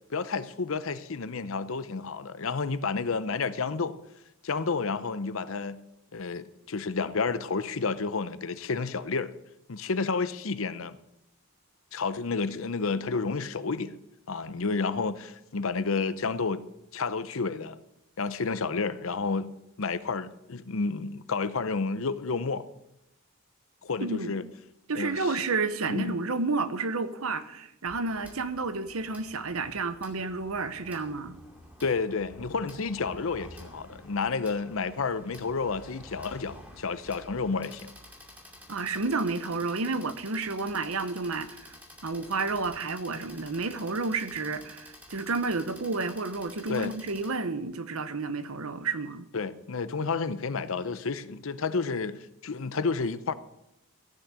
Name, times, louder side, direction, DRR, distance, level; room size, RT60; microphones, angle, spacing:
voice 1, 0.1-3.9 4.4-5.8 6.1-9.3 9.7-11.0 11.9-13.9 14.3-16.6 16.9-17.8 18.2-19.5 19.8-22.7 23.8-24.4 24.9-25.2 25.9-26.2 31.8-37.9 46.7-46.9 49.3-53.3, left 4 dB, 65° left, 0.7 m, -30 dB
voice 2, 24.0-24.3 24.9-31.4 38.7-41.7 42.0-49.2, right 3 dB, 75° right, 0.9 m, -31 dB
sound 1, 27.9-47.3, left 1 dB, 10° right, 2.5 m, -50 dB
14.5 x 6.3 x 8.2 m
head